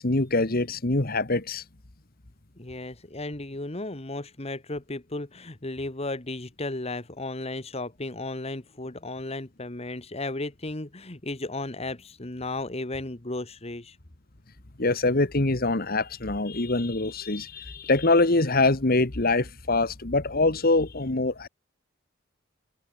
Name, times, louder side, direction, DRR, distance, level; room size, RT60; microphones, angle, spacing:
voice 1, 0.0-1.6 14.8-21.5, left 2 dB, 50° left, 1.6 m, -24 dB
voice 2, 2.6-14.0, left 2 dB, 30° left, 1.6 m, -34 dB
head